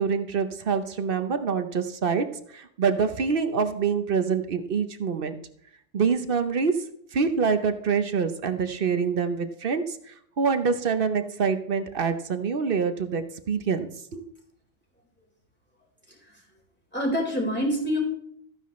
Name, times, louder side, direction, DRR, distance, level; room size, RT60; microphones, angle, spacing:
voice 1, 0.0-5.4 5.9-6.8 7.1-14.2, right 5 dB, 50° right, 10 dB, 1.0 m, -26 dB
voice 2, 16.1-16.4 16.9-18.0, equal, 10° left, -3 dB, 4.1 m, -27 dB
14.5 x 9.8 x 3.1 m, 0.68 s
omnidirectional pair, 1.3 m